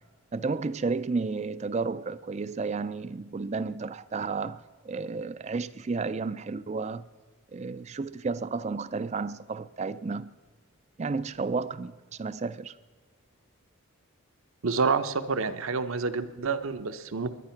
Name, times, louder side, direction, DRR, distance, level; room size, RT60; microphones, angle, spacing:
voice 1, 0.3-7.1 7.5-10.3 11.0-12.8, right 4 dB, 30° right, 0.3 m, -32 dB
voice 2, 14.6-17.3, right 4 dB, 65° right, 0.8 m, -28 dB
21.0 x 10.5 x 5.8 m
head